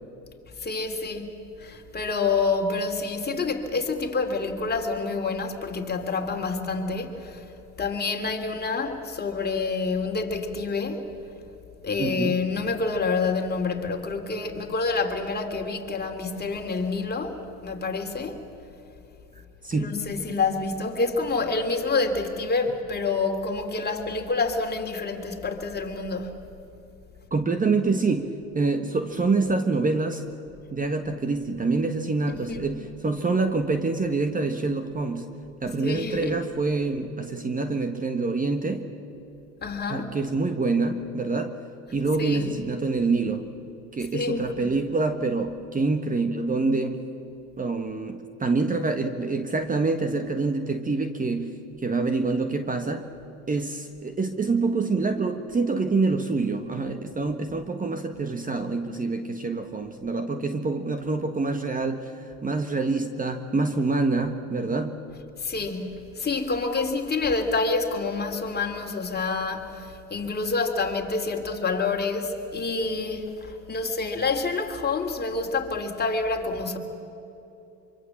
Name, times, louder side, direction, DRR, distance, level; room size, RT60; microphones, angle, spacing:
voice 1, 0.6-1.3 1.6-7.5 7.8-11.0 11.8-18.4 19.7-26.3 32.3-32.7 35.8-36.4 39.6-40.1 42.2-42.5 44.1-44.7 65.4-76.8, left 4 dB, 25° left, 3.2 m, -28 dB
voice 2, 12.0-12.4 19.6-19.9 27.3-30.2 30.7-35.2 35.6-38.9 39.9-41.6 41.9-43.5 43.9-47.0 47.6-53.0 53.5-65.0, right 3 dB, 20° right, 1.5 m, -26 dB
25.0 x 24.5 x 7.3 m
hypercardioid pair, 80°, 37 cm